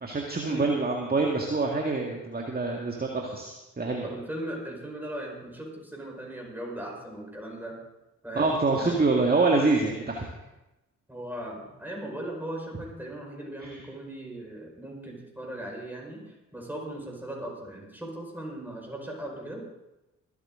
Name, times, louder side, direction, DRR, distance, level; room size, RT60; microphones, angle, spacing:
voice 1, 0.0-4.1 8.4-10.2, right 3 dB, 25° right, 1 dB, 2.0 m, -26 dB
voice 2, 4.0-7.8 8.2-9.0 11.1-19.6, right 1 dB, 5° right, -1 dB, 5.3 m, -38 dB
24.5 x 8.3 x 3.8 m, 0.98 s
hypercardioid pair, 40°, 39 cm